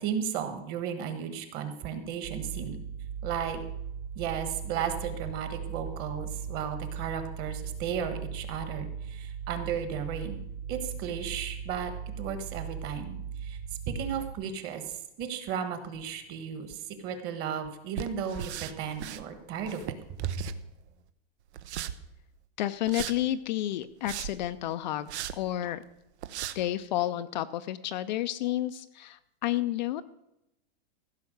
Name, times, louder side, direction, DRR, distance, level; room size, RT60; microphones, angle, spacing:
voice 1, 0.0-2.8 3.2-3.6 4.1-10.4 10.7-11.9 12.2-13.6 13.9-19.9 20.2-20.4, right 7 dB, 30° right, 9 dB, 1.4 m, -34 dB
sound 1, 2.2-14.3, right 7 dB, 60° right, 1.5 m, -38 dB
sound 2, 18.0-19.2 19.6-20.9 21.5-21.9 22.9-23.2 23.8-24.5 25.1-25.4 25.8-25.9 26.2-26.6, right 11 dB, 80° right, 1.0 m, -37 dB
voice 2, 22.6-25.8 26.5-30.0, left 14 dB, 45° left, 11 dB, 0.5 m, -31 dB
15.5 x 5.7 x 7.9 m, 0.86 s
supercardioid pair, 170°, 33 cm